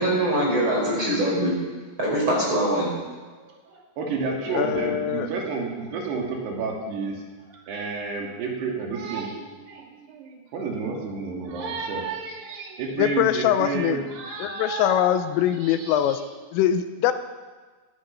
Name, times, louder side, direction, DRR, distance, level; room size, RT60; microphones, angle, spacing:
voice 1, 0.0-1.5 2.0-2.9, right 1 dB, 25° right, -4 dB, 5.2 m, -23 dB
voice 2, 3.5-7.2 7.7-16.2, right 4 dB, 60° right, 0 dB, 4.2 m, -31 dB
voice 3, 4.5-5.3 13.0-14.0 14.4-16.2 16.5-17.1, left 11 dB, 85° left, 10 dB, 3.4 m, -22 dB
17.0 x 15.0 x 5.4 m, 1.4 s
omnidirectional pair, 5.9 m